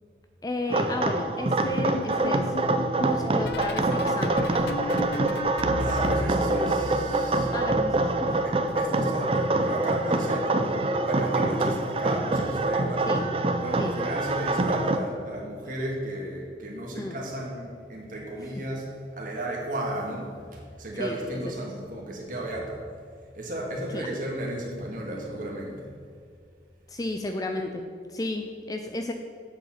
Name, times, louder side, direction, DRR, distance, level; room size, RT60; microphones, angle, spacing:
voice 1, 0.4-2.5 3.0-4.7 7.5-8.4 13.1-13.3 13.8-13.9 17.0-17.2 21.0-21.2 23.9-24.1 26.9-29.1, left 1 dB, 20° left, 5 dB, 0.4 m, -33 dB
sound 1, 0.7-15.0, right 2 dB, 30° right, 0.5 m, -25 dB
sound 2, 1.6-8.4 8.7-10.3 11.3-11.6 11.9-12.2 13.8-14.0 14.4-14.6 16.2-16.3, left 1 dB, 65° left, 0.6 m, -36 dB
voice 2, 5.8-7.5 8.4-13.1 13.6-22.8 23.3-25.9, right 1 dB, 50° right, -2 dB, 1.7 m, -34 dB
8.1 x 7.1 x 5.8 m, 2.2 s
head